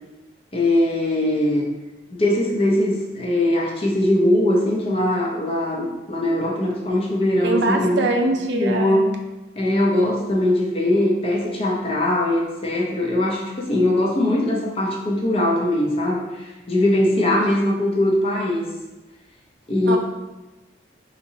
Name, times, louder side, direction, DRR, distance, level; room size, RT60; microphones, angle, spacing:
voice 1, 0.5-1.7 2.1-8.0 8.5-9.0 9.6-18.7 19.7-20.0, left 1 dB, 30° left, -2 dB, 0.6 m, -21 dB
voice 2, 7.4-9.0 19.9-20.0, right 2 dB, 70° right, 3 dB, 0.4 m, -22 dB
3.8 x 2.8 x 2.7 m, 1.1 s
head